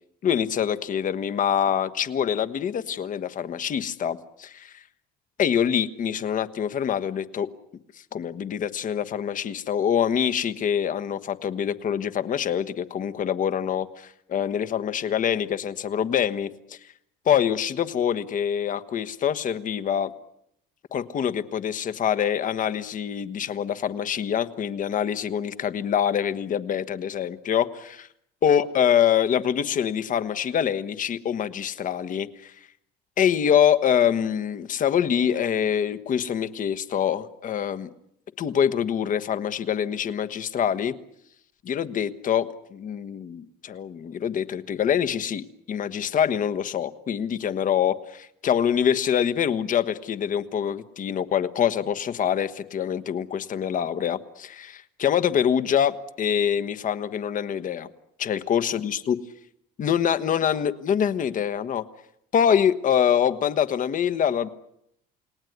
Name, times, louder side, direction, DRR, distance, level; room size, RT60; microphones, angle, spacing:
voice 1, 0.2-4.8 5.4-7.5 8.1-16.8 17.2-20.1 20.9-28.1 28.4-32.5 33.2-37.9 38.4-40.9 41.6-57.9 58.2-59.1 59.8-61.9 62.3-64.5, left 8 dB, 40° left, 12 dB, 1.4 m, -25 dB
29.5 x 18.5 x 9.5 m, 0.76 s
cardioid pair, 125°, 20 cm